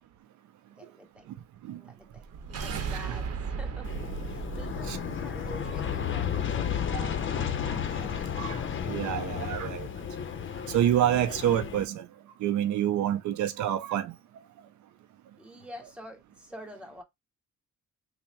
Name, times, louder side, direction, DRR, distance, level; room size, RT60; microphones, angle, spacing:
voice 1, 0.8-1.3 1.7-2.2 2.6-3.9 4.3-8.4 15.4-17.0, equal, 5° right, 1.5 m, -48 dB
sound 1, 2.1-7.2, right 5 dB, 55° right, 0.9 m, -37 dB
Aircraft, 3.8-11.8, left 8 dB, 40° left, 0.6 m, -33 dB
voice 2, 8.4-9.9 10.7-12.1 12.4-14.1, right 11 dB, 75° right, 0.5 m, -28 dB
3.5 x 2.1 x 4.3 m
cardioid pair, 90°, 30 cm